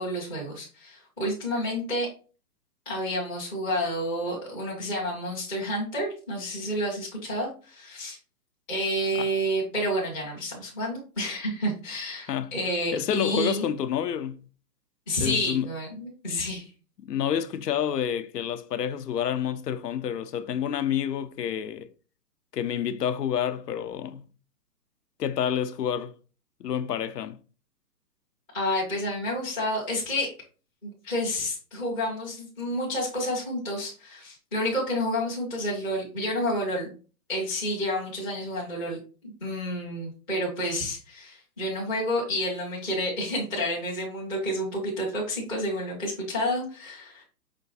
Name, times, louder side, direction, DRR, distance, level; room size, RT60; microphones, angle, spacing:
voice 1, 0.0-2.1 2.9-8.2 8.7-13.7 15.1-16.7 28.5-30.3 30.8-36.9 37.3-47.2, equal, 5° left, 0.5 m, -30 dB
voice 2, 12.9-14.4 15.2-15.7 17.1-21.9 22.5-24.3 25.2-26.1 26.6-27.4, left 9 dB, 80° left, 0.6 m, -28 dB
5.1 x 2.4 x 3.9 m
hypercardioid pair, 145°, 47 cm